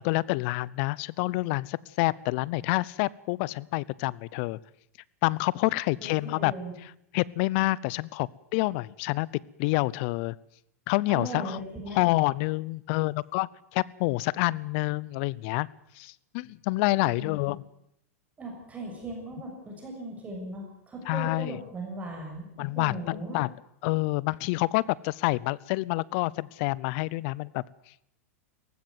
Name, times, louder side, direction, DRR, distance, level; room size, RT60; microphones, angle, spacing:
voice 1, 0.0-4.6 5.2-6.5 7.1-9.3 9.6-10.4 10.9-11.6 11.9-15.7 16.0-17.6 21.1-21.6 22.6-23.5 23.8-27.6, left 21 dB, 55° left, 23 dB, 0.7 m, -28 dB
voice 2, 6.0-6.7 11.1-12.1 17.0-17.5 18.4-23.4, right 1 dB, 20° right, 1 dB, 6.7 m, -38 dB
18.5 x 15.5 x 9.3 m, 0.77 s
hypercardioid pair, 115°, 8 cm